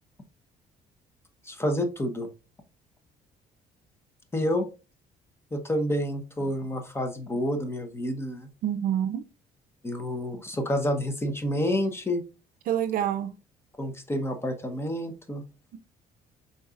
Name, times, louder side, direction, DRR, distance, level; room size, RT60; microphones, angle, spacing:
voice 1, 1.4-2.3 4.3-4.6 5.5-8.5 9.8-12.2 13.8-15.4, equal, 15° left, 0.9 m, -29 dB
voice 2, 8.6-9.2 12.7-13.3, right 10 dB, 65° right, 0.4 m, -26 dB
5.3 x 3.9 x 2.4 m
cardioid pair, 115°, 16 cm